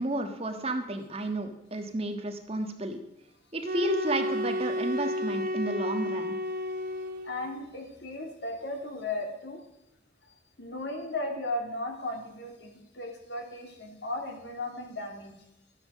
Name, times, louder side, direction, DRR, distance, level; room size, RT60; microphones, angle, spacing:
voice 1, 0.0-3.0 3.5-6.4, right 1 dB, 35° right, 5 dB, 1.5 m, -32 dB
sound 1, 3.6-7.5, left 1 dB, 50° right, 0.9 m, -32 dB
voice 2, 7.2-9.6 10.6-15.3, left 2 dB, 65° left, 3 dB, 2.9 m, -36 dB
13.0 x 10.5 x 6.4 m, 0.87 s
head